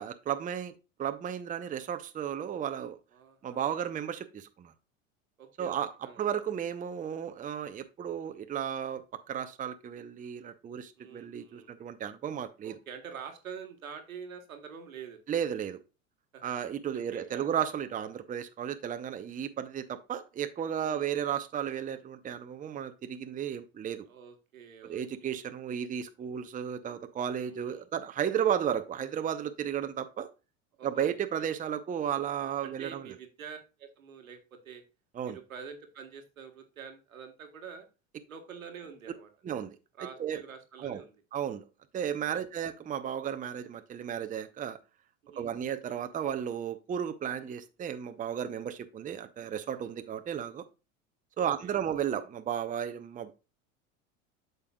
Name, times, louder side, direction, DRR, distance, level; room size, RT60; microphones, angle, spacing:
voice 1, 0.0-3.0 3.4-4.7 5.6-5.9 6.2-12.7 15.3-15.8 16.4-24.1 24.8-30.3 30.8-33.1 35.1-35.4 39.4-39.8 40.2-40.4 40.8-41.0 41.3-41.6 41.9-44.8 45.4-50.7 51.4-53.3, right 9 dB, 20° right, 9 dB, 0.6 m, -34 dB
voice 2, 3.1-3.8 5.4-6.2 11.0-11.8 12.6-15.2 16.3-16.4 16.9-17.5 20.8-21.1 24.1-25.4 27.4-27.9 30.8-31.1 31.4-31.5 32.6-34.8 35.2-37.9 38.3-39.3 40.0-41.2 42.3-42.4 45.2-45.5 51.4-51.7, right 6 dB, 85° right, 6 dB, 1.4 m, -47 dB
8.3 x 6.7 x 2.3 m, 0.30 s
hypercardioid pair, 80°, 40 cm